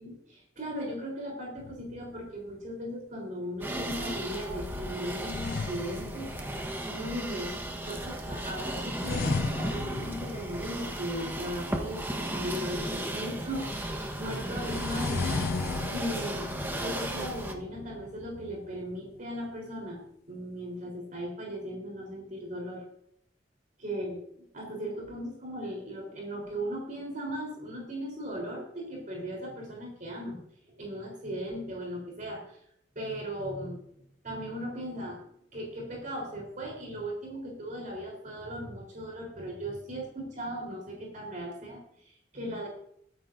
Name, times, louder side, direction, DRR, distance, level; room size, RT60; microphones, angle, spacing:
voice 1, 0.0-6.3 6.9-7.5 7.8-15.6 15.9-16.5 16.8-20.0 20.3-22.8 23.8-24.2 24.5-30.4 30.7-32.6 33.0-33.8 34.2-35.3 35.5-42.7, equal, 45° right, -1 dB, 4.0 m, -37 dB
sound 1, 1.6-2.5 4.5-6.8 9.0-11.1 14.5-19.2, left 4 dB, 55° left, 0.5 m, -36 dB
sound 2, 3.6-17.5, right 1 dB, 10° right, 1.3 m, -35 dB
22.0 x 10.0 x 2.7 m, 0.71 s
head